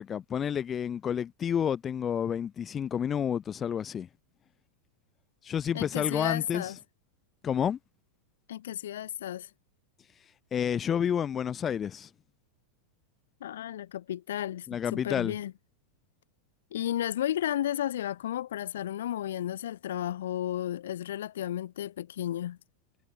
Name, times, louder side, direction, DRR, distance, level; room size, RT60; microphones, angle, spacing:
voice 1, 0.0-4.1 5.4-6.6 7.4-7.8 10.5-12.1 14.7-15.4, left 8 dB, 25° left, 2.4 m, -30 dB
voice 2, 5.7-6.8 8.5-9.5 13.4-15.5 16.7-22.6, left 11 dB, 60° left, 2.0 m, -33 dB
figure-of-eight pair, 90°, 0 cm